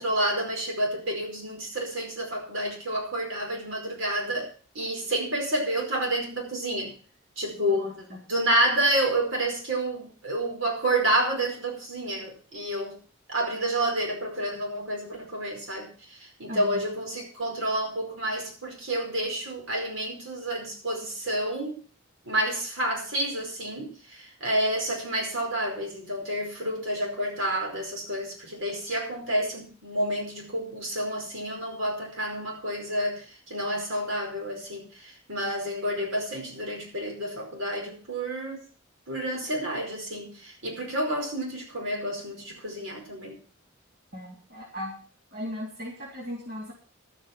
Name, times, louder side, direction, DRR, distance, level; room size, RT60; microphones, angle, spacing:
voice 1, 0.0-4.5 4.7-6.9 7.4-13.0 13.3-21.8 22.2-38.6 39.1-43.4, right 1 dB, 80° right, 0 dB, 5.0 m, -29 dB
voice 2, 7.8-8.2 16.5-16.9 44.1-45.0 45.3-46.7, left 1 dB, 50° right, -3 dB, 3.6 m, -37 dB
12.0 x 9.0 x 6.0 m, 0.42 s
head